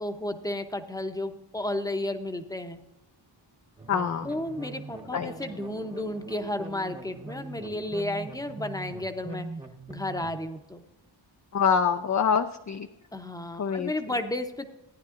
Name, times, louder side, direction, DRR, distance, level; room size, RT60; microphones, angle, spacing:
voice 1, 0.0-2.8 4.2-9.5 9.9-10.8 13.1-14.7, left 1 dB, 10° left, 7 dB, 0.8 m, -33 dB
sound 1, 3.8-10.4, right 2 dB, 10° right, 1.0 m, -42 dB
voice 2, 3.9-4.3 5.1-5.3 11.5-12.9 13.6-13.9, left 6 dB, 40° left, 7 dB, 0.5 m, -25 dB
15.5 x 10.0 x 2.5 m, 0.91 s
wide cardioid pair, 105°, 46 cm